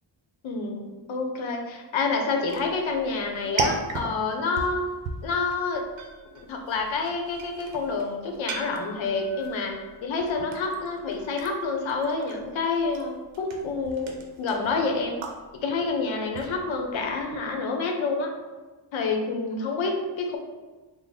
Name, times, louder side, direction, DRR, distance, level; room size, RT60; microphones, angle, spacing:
voice 1, 0.4-4.9 5.2-5.9 6.3-9.7 10.0-15.2 15.6-18.3 18.9-20.4, left 4 dB, 85° left, 3 dB, 0.7 m, -28 dB
sound 1, 2.4-17.6, right 3 dB, 80° right, 0.6 m, -37 dB
3.4 x 2.0 x 4.0 m, 1.2 s
wide cardioid pair, 135°, 45 cm